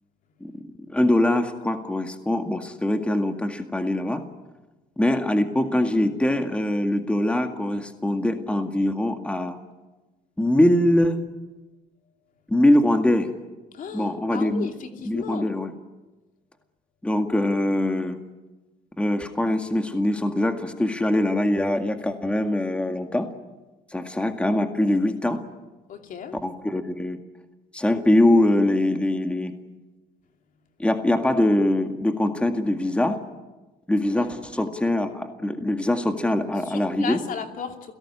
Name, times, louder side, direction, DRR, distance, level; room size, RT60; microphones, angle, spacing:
voice 1, 0.9-4.2 5.0-9.6 10.4-11.2 12.5-13.3 13.9-14.7 15.1-15.7 17.0-18.2 19.0-23.3 23.9-25.4 26.4-27.2 27.7-29.5 30.8-33.2 33.9-37.2, left 1 dB, 5° left, 6 dB, 2.0 m, -23 dB
voice 2, 13.7-15.5 25.9-26.4 34.2-34.3 36.7-37.9, left 7 dB, 55° left, 5 dB, 2.8 m, -35 dB
30.0 x 17.5 x 9.9 m, 1.2 s
cardioid pair, 110°, 17 cm